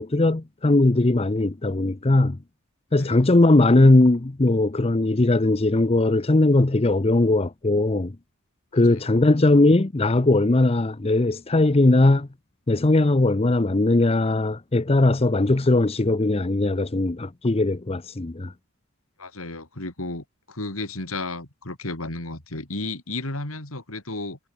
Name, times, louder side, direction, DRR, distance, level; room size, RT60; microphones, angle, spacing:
voice 1, 0.0-2.4 2.9-8.1 8.7-12.3 12.7-18.5, left 2 dB, 30° left, 0.7 m, -19 dB
voice 2, 2.9-3.3 8.9-9.2 19.2-24.4, left 2 dB, 80° left, 4.5 m, -33 dB
head